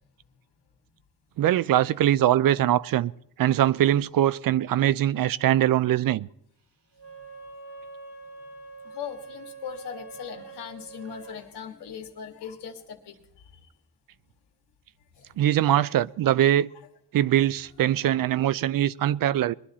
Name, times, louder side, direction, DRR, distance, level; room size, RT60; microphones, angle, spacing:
voice 1, 1.4-3.1 3.4-6.3 15.4-16.7 17.1-19.5, right 12 dB, 60° right, 0.5 m, -22 dB
Wind instrument woodwind instrument, 6.9-11.4, right 4 dB, 80° right, 2.9 m, -44 dB
voice 2, 8.8-13.7 15.2-15.3 15.8-15.9 18.3-18.4, left 7 dB, 85° left, 1.9 m, -40 dB
21.0 x 11.0 x 4.3 m
cardioid pair, 90°, 39 cm